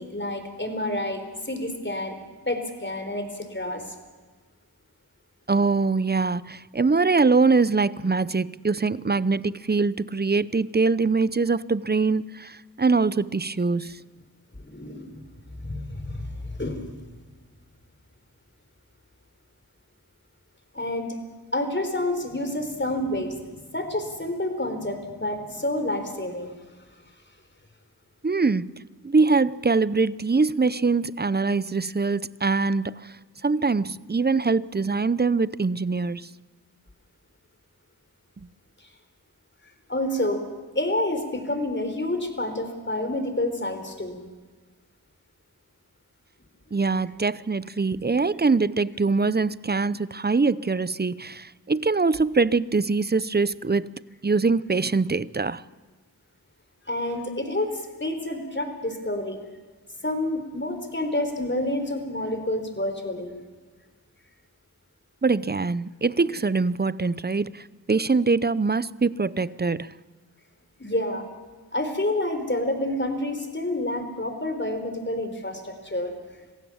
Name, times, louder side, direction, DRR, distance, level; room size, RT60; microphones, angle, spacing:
voice 1, 0.0-2.2 2.5-3.8 14.5-15.2 15.6-16.9 20.7-21.2 21.5-23.4 23.7-26.6 39.9-40.4 40.7-44.2 56.8-59.4 60.0-63.4 70.8-71.2 71.7-76.1, left 1 dB, 30° left, 4.1 m, -28 dB
voice 2, 5.5-14.0 28.2-28.7 29.0-33.1 33.4-36.3 46.7-53.9 54.2-55.6 65.2-69.9, right 4 dB, 25° right, 0.6 m, -23 dB
26.0 x 16.0 x 7.3 m
cardioid pair, 40°, 39 cm